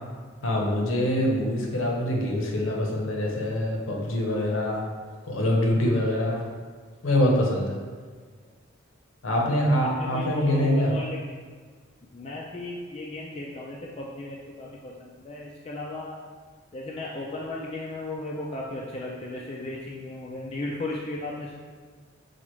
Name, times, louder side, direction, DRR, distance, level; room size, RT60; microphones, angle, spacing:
voice 1, 0.4-4.9 5.3-6.5 7.0-7.8 9.2-10.9, left 1 dB, 70° left, 0 dB, 0.7 m, -24 dB
voice 2, 9.7-11.2 12.1-16.2 16.7-21.6, left 2 dB, 30° left, -3 dB, 0.3 m, -36 dB
5.9 x 2.4 x 3.0 m, 1.6 s
head